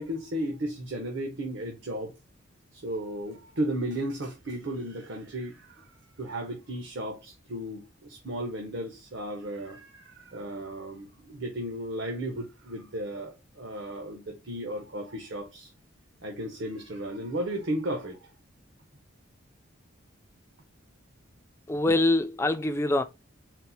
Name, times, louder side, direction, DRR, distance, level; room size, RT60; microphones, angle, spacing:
voice 1, 0.0-2.1 2.7-5.9 6.2-15.7 16.2-18.3, right 1 dB, 65° right, 0.9 m, -34 dB
voice 2, 21.7-23.0, left 2 dB, 15° left, 0.3 m, -24 dB
4.3 x 2.0 x 4.1 m
head